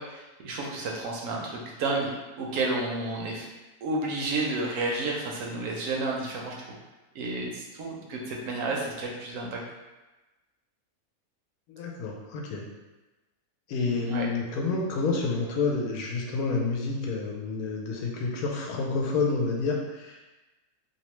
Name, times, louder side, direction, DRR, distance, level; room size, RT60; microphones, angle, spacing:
voice 1, 0.0-2.1 2.4-3.5 3.8-6.6 7.1-9.6 13.9-14.3, right 2 dB, 70° right, -1 dB, 0.9 m, -31 dB
voice 2, 11.7-12.6 13.7-20.3, left 4 dB, 80° left, -1 dB, 1.1 m, -29 dB
2.8 x 2.1 x 3.0 m, 1.1 s
omnidirectional pair, 1.6 m